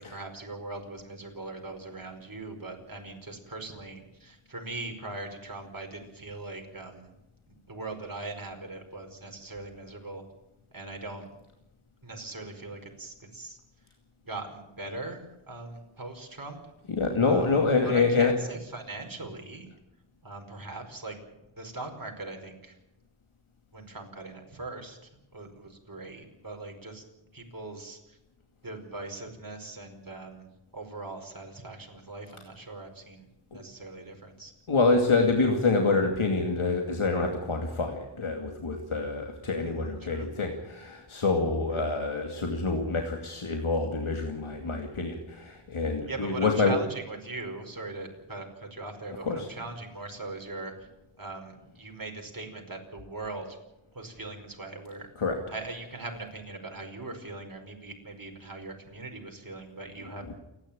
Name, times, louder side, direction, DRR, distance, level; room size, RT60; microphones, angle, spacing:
voice 1, 0.0-7.1 7.7-10.2 10.7-11.3 12.0-13.6 14.2-16.7 17.2-17.5 17.8-19.7 20.2-21.2 21.6-22.8 23.7-27.0 27.3-28.2 28.6-33.3 33.5-34.5 39.6-40.3 41.7-41.8 46.0-50.9 51.2-53.6 53.9-55.1 55.5-60.3, right 2 dB, 45° right, 3 dB, 5.2 m, -40 dB
voice 2, 16.9-18.3 34.7-46.8 49.2-49.5 55.2-55.4 60.3-60.4, left 3 dB, 85° left, 3 dB, 2.5 m, -26 dB
28.5 x 11.5 x 8.9 m, 0.93 s
wide cardioid pair, 70°, 48 cm